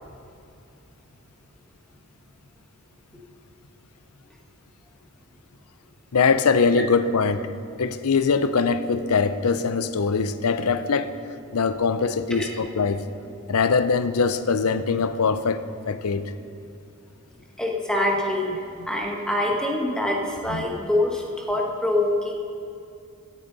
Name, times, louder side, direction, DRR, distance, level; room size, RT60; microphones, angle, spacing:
voice 1, 6.1-7.5 7.8-11.1 11.5-13.0 13.5-16.3 18.8-18.9 20.5-20.6, left 5 dB, 80° left, 11 dB, 0.6 m, -22 dB
voice 2, 17.6-22.3, left 1 dB, 5° left, -1 dB, 1.4 m, -25 dB
17.0 x 10.5 x 4.1 m, 2.5 s
head